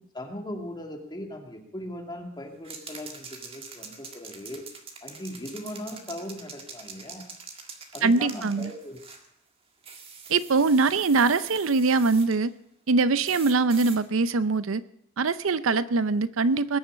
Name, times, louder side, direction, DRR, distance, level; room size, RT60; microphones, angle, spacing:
voice 1, 0.1-4.6 5.0-7.3 7.9-9.0, left 1 dB, 20° left, 3 dB, 2.3 m, -38 dB
sound 1, 2.6-9.3 9.8-12.4 13.2-14.0, right 5 dB, 25° right, 1.8 m, -44 dB
voice 2, 8.0-8.7 10.3-12.5 12.9-14.8 15.2-16.8, right 3 dB, 70° right, 15 dB, 0.6 m, -23 dB
20.5 x 7.1 x 8.7 m, 0.75 s
head